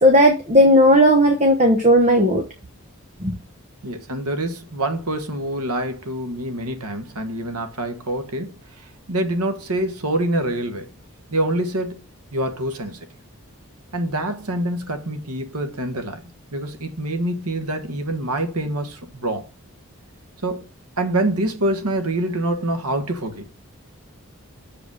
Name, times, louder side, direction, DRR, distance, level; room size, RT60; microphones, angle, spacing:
voice 1, 0.0-2.4 3.2-3.3, equal, 30° right, 1.1 m, -14 dB
voice 2, 3.8-8.5 9.1-10.9 11.3-12.0 12.3-13.0 13.9-16.2 16.5-19.5 20.4-20.6 21.0-23.5, right 1 dB, 90° right, 1.5 m, -25 dB
7.0 x 5.0 x 6.2 m
head